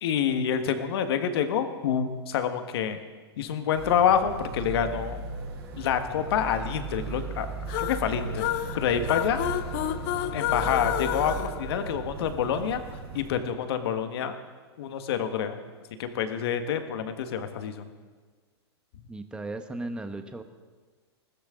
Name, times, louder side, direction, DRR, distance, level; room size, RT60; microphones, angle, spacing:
voice 1, 0.0-3.0 3.4-5.2 5.7-7.5 7.8-8.4 8.7-9.4 10.3-14.3 14.8-15.6 16.0-17.9, left 8 dB, 60° left, 8 dB, 1.6 m, -27 dB
Motor vehicle (road), 3.7-13.3, right 4 dB, 65° right, 5.2 m, -37 dB
sound 1, 7.7-12.4, left 13 dB, 45° left, 0.7 m, -31 dB
voice 2, 19.1-20.4, right 2 dB, 5° right, 8 dB, 1.0 m, -36 dB
20.5 x 15.0 x 3.8 m, 1.4 s
hypercardioid pair, 120°, 14 cm